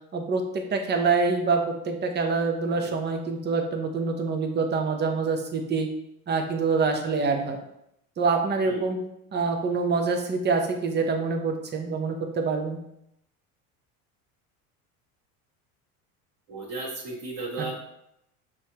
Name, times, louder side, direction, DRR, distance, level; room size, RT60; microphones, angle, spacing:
voice 1, 0.1-5.9 6.3-7.6 8.2-9.0 9.3-12.8 17.6-17.7, right 4 dB, 25° right, 4 dB, 0.7 m, -26 dB
voice 2, 16.5-17.7, right 3 dB, 45° right, -7 dB, 1.6 m, -34 dB
5.4 x 3.2 x 2.9 m, 0.80 s
supercardioid pair, 95°, 42 cm